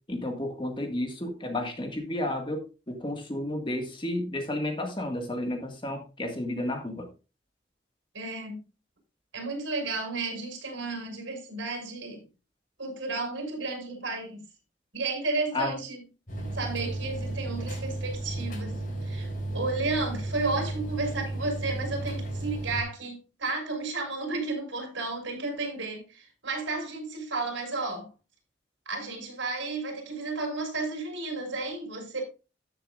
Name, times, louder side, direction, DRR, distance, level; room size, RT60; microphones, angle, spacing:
voice 1, 0.1-7.1 15.5-15.7, left 1 dB, 25° left, 1.8 m, -32 dB
voice 2, 8.1-8.6 9.3-12.2 12.8-14.4 14.9-16.0 16.5-18.7 19.0-28.1 28.8-32.2, right 3 dB, 80° right, 5.0 m, -32 dB
sound 1, 16.3-22.8, right 2 dB, 45° left, 4.0 m, -34 dB
13.5 x 7.5 x 2.5 m
head